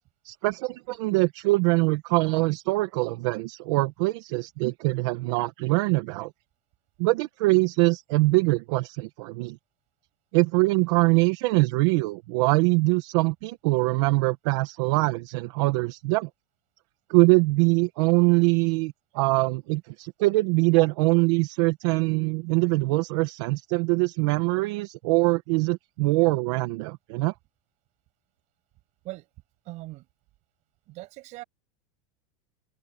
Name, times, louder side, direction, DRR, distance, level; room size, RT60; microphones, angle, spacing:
voice 1, 0.2-6.3 7.0-9.6 10.3-16.3 17.1-27.3, right 24 dB, 55° right, 1.7 m, -23 dB
voice 2, 29.6-30.1 30.9-31.4, right 20 dB, 40° right, 7.8 m, -40 dB
open air
supercardioid pair, 165°, 18 cm